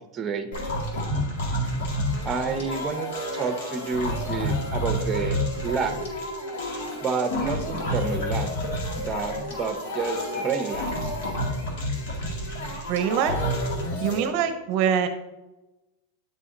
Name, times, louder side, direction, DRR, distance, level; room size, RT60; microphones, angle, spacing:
voice 1, 0.1-0.5 2.2-3.1 3.3-5.4 5.6-5.9 7.0-8.5 9.0-10.9, right 5 dB, 25° right, 8 dB, 0.8 m, -29 dB
sound 1, 0.5-14.3, equal, 70° left, 1.8 m, -29 dB
voice 2, 12.9-13.4 14.0-15.1, right 8 dB, 55° right, 9 dB, 0.7 m, -24 dB
9.4 x 4.1 x 3.8 m, 1.0 s
supercardioid pair, 130°, 0 cm